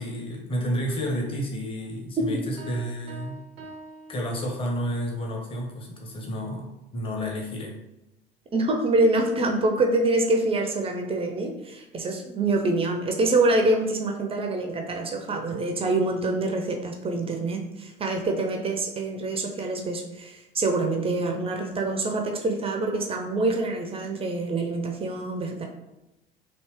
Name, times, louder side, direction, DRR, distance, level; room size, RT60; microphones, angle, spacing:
voice 1, 0.0-3.4 4.1-7.8, equal, 20° left, 0 dB, 0.8 m, -31 dB
sound 1, 2.6-5.0, right 2 dB, 80° right, 0.5 m, -44 dB
voice 2, 8.5-25.7, right 2 dB, 20° right, 3 dB, 0.4 m, -25 dB
3.2 x 2.7 x 3.0 m, 0.95 s
figure-of-eight pair, 65°, 29 cm